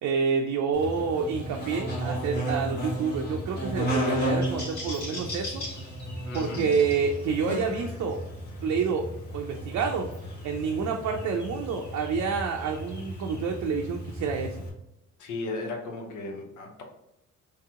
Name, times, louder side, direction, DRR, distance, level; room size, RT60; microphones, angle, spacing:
voice 1, 0.0-5.6 6.3-8.2 8.6-9.1 9.3-10.1 10.4-14.6, right 5 dB, 70° right, 2 dB, 0.5 m, -28 dB
Buzz, 0.7-14.7, equal, 35° left, 1.3 m, -34 dB
voice 2, 6.2-6.7 15.2-16.8, left 2 dB, 80° left, 2 dB, 0.9 m, -35 dB
3.2 x 2.8 x 3.6 m, 0.88 s
cardioid pair, 90°, 30 cm